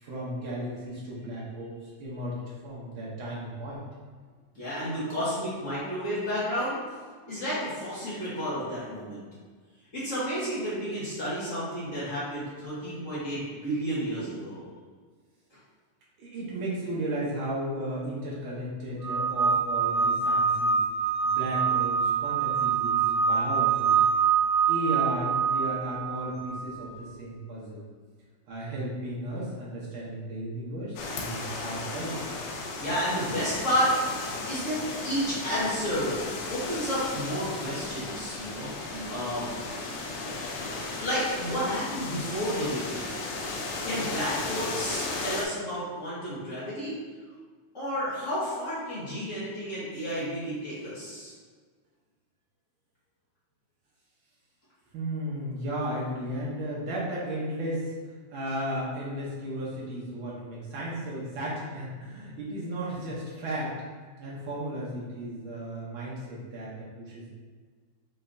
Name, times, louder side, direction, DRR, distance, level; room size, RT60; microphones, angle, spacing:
voice 1, 0.0-2.4 2.6-3.8 16.2-20.8 21.2-24.2 24.7-27.8 28.5-32.3 38.9-39.1 54.9-57.9 58.3-63.7 64.2-67.3, right 1 dB, 75° right, -6 dB, 1.1 m, -34 dB
voice 2, 4.5-6.8 7.3-9.2 9.9-14.6 32.8-33.9 34.5-36.2 36.5-38.7 39.1-39.5 41.0-43.2 43.8-47.0 47.7-51.3, equal, 70° left, -11 dB, 0.7 m, -31 dB
sound 1, 19.0-26.8, right 6 dB, 50° right, 2.1 m, -25 dB
sound 2, 31.0-45.5, left 3 dB, 85° left, 2.2 m, -35 dB
5.8 x 3.3 x 2.6 m, 1.5 s
omnidirectional pair, 3.5 m